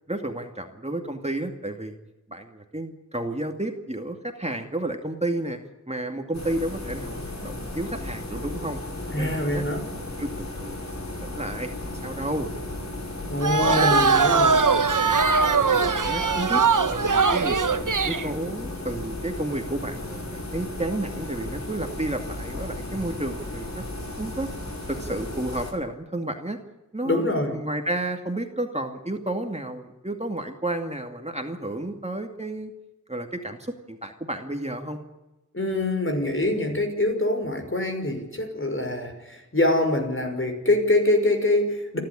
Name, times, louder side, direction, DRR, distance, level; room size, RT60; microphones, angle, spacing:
voice 1, 0.1-1.9 2.3-5.6 5.9-8.8 9.2-9.6 10.0-10.8 11.0-12.5 13.6-14.3 15.7-24.5 24.9-26.6 26.9-32.7 33.1-35.0, right 1 dB, 20° right, 4 dB, 2.4 m, -32 dB
sound 1, 6.3-25.7, left 1 dB, 60° left, 5.7 m, -35 dB
voice 2, 9.1-9.8 13.3-14.6 27.0-27.6 35.5-42.0, left 1 dB, 40° left, 4 dB, 5.9 m, -24 dB
sound 2, 13.4-18.3, right 4 dB, 90° right, 1.2 m, -21 dB
29.0 x 12.0 x 10.0 m, 1.0 s
wide cardioid pair, 60°, 30 cm